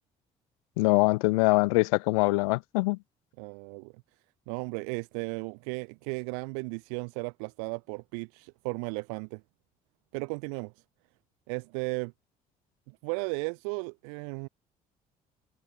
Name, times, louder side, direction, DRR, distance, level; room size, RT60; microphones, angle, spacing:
voice 1, 0.8-3.0, left 26 dB, 90° left, 0.4 m, -23 dB
voice 2, 3.4-3.9 4.5-9.4 10.1-10.7 11.5-12.1 12.9-14.5, right 40 dB or more, 85° right, 0.9 m, -35 dB
hypercardioid pair, 60°, 17 cm